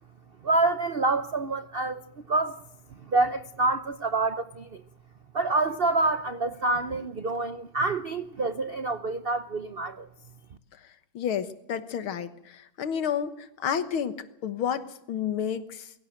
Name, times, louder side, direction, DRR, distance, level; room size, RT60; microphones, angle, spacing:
voice 1, 0.4-2.6 2.9-4.8 5.3-10.3, right 3 dB, 65° right, 11 dB, 0.5 m, -27 dB
voice 2, 11.1-15.9, left 8 dB, 80° left, 12 dB, 2.1 m, -31 dB
22.5 x 16.5 x 7.8 m, 0.77 s
omnidirectional pair, 2.3 m